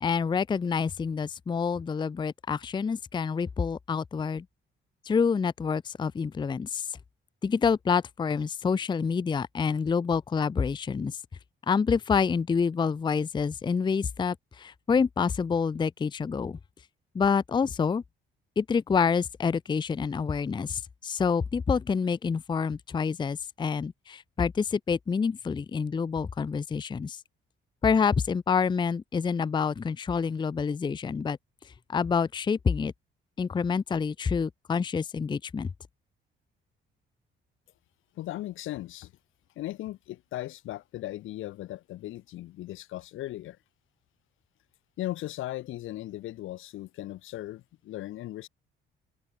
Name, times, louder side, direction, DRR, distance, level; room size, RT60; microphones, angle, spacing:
voice 1, 0.0-4.4 5.1-6.9 7.4-11.2 11.7-16.6 17.1-18.0 18.6-27.2 27.8-31.4 31.9-32.9 33.4-35.7, left 5 dB, 25° left, 0.5 m, -27 dB
voice 2, 38.2-39.1 39.6-43.6 45.0-48.5, left 15 dB, 85° left, 1.2 m, -37 dB
cardioid pair, 90°, 20 cm